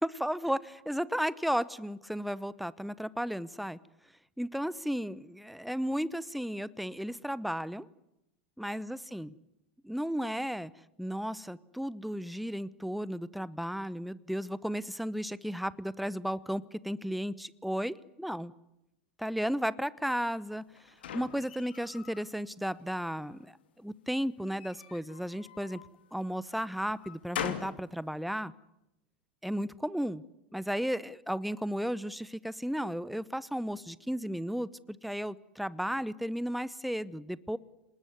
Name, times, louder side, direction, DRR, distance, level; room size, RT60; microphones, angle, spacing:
voice 1, 0.0-3.8 4.4-7.9 8.6-9.3 9.8-10.7 11.0-18.5 19.2-20.6 21.1-25.8 26.1-28.5 29.4-30.2 30.5-37.6, equal, ahead, 19 dB, 0.9 m, -34 dB
sound 1, 20.3-22.3 22.7-23.5 24.4-25.9 26.5-27.8, left 9 dB, 75° left, 2.8 m, -42 dB
27.5 x 20.0 x 9.6 m, 0.92 s
hypercardioid pair, 90°, 6 cm